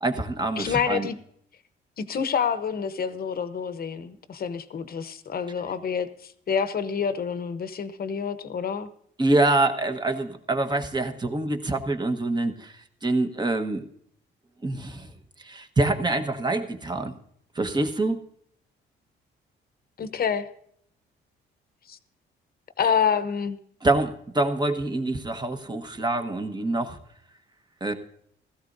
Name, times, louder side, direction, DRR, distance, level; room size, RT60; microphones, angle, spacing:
voice 1, 0.0-1.1 9.2-12.7 13.0-13.8 14.6-15.1 15.4-17.1 17.5-18.2 23.8-27.0 27.8-27.9, right 2 dB, 20° right, 6 dB, 1.3 m, -25 dB
voice 2, 0.6-1.2 2.0-8.9 20.0-20.5 21.9-22.0 22.8-23.6, left 7 dB, 50° left, 12 dB, 1.0 m, -27 dB
16.0 x 14.5 x 2.7 m, 0.66 s
cardioid pair, 90°, 20 cm